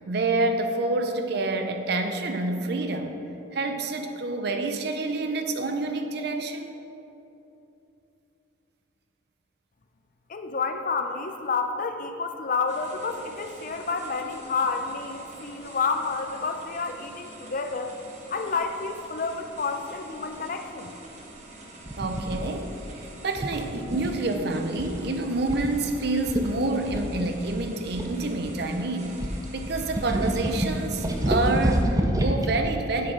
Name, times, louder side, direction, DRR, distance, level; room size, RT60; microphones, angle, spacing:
voice 1, 0.1-3.2 3.5-6.7 22.0-33.1, right 2 dB, 60° right, 6 dB, 0.6 m, -28 dB
voice 2, 10.3-18.0 18.3-20.9, left 4 dB, 45° left, 6 dB, 0.5 m, -29 dB
sound 1, 12.7-31.8, right 2 dB, 40° right, 1.0 m, -46 dB
sound 2, 21.9-22.4 23.4-24.3 24.8-25.1 25.5-25.7 26.0-26.1 26.3-26.5 26.9-28.7 29.2-32.5, equal, 20° right, 0.6 m, -27 dB
7.5 x 6.8 x 4.8 m, 2.9 s
head